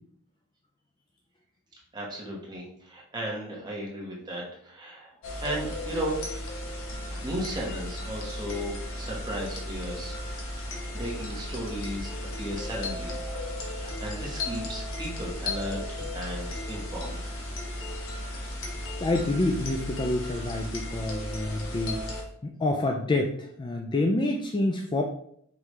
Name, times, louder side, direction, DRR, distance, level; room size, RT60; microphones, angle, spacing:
voice 1, 1.9-5.1 5.4-6.2 7.2-10.2 10.6-13.2 13.6-17.4, equal, 20° right, -4 dB, 1.2 m, -35 dB
sound 1, 5.2-22.2, left 1 dB, 60° left, 1.1 m, -35 dB
voice 2, 13.3-14.0 19.0-22.0 22.4-25.0, left 2 dB, 20° left, 2 dB, 0.3 m, -28 dB
4.9 x 3.4 x 3.1 m, 0.67 s
head